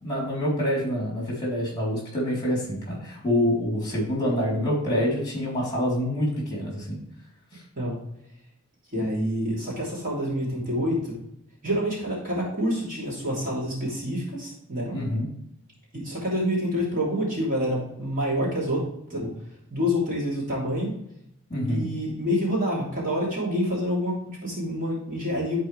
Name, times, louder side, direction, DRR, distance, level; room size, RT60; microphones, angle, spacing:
voice 1, 0.0-7.0 7.5-7.6 14.9-15.3 21.5-21.9, equal, 20° left, -4 dB, 3.5 m, -26 dB
voice 2, 8.9-11.2 11.6-14.9 15.9-18.8 19.1-19.3 19.7-20.9 21.7-25.6, equal, 40° right, -5 dB, 3.2 m, -27 dB
13.0 x 4.6 x 3.3 m, 0.77 s
head